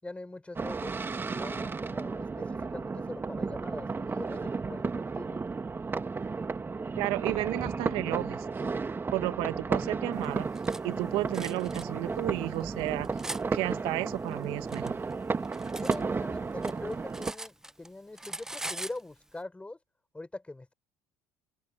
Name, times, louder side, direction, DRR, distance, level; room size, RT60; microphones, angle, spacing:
voice 1, 0.0-0.9 1.3-5.4 15.8-19.8 20.1-20.7, left 2 dB, 15° left, 6.4 m, -42 dB
sound 1, 0.6-17.3, right 4 dB, 25° right, 1.6 m, -33 dB
voice 2, 7.0-8.5 9.1-10.5 10.8-13.1 13.5-15.0, right 19 dB, 70° right, 1.7 m, -32 dB
Cutlery silverware, 10.2-10.8 11.3-11.9 12.5-13.4 14.3-16.0 16.3-17.9 18.2-19.0, right 1 dB, 5° right, 0.9 m, -41 dB
open air
supercardioid pair, 80°, 9 cm